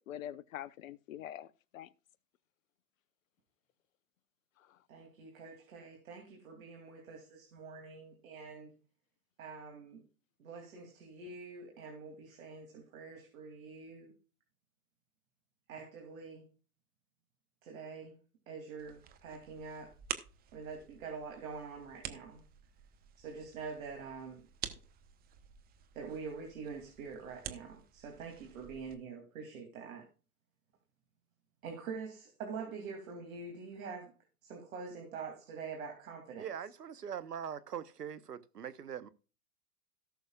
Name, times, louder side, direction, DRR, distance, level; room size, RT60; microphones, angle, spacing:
voice 1, 0.0-1.9 4.6-4.8, left 11 dB, 55° left, 0.9 m, -45 dB
voice 2, 4.9-8.7 9.4-10.0 10.4-14.1 15.7-16.5 17.6-18.2 18.5-19.9 20.5-22.4 23.2-24.4 25.9-30.1 31.6-34.1 34.4-36.5, right 5 dB, 60° right, 2.8 m, -45 dB
sound 1, 18.8-28.9, right 10 dB, 20° right, 0.9 m, -49 dB
voice 3, 36.4-39.1, right 8 dB, 85° right, 1.1 m, -42 dB
17.5 x 6.4 x 2.4 m
hypercardioid pair, 115°, 47 cm